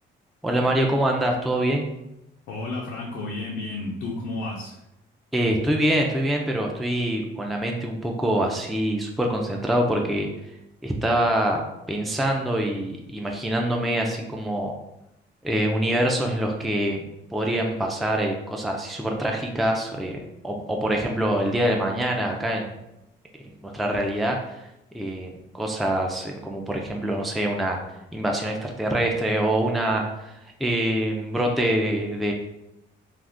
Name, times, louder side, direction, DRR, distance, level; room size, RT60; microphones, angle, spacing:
voice 1, 0.4-1.9 5.3-10.3 10.8-11.6 11.9-14.7 15.4-17.1 17.3-22.7 23.6-24.6 24.9-27.8 28.1-30.3 30.6-32.3, right 1 dB, ahead, 1 dB, 0.4 m, -25 dB
voice 2, 2.5-4.8, left 2 dB, 75° left, -2 dB, 0.5 m, -32 dB
2.4 x 2.4 x 3.5 m, 0.87 s
cardioid pair, 90°, 20 cm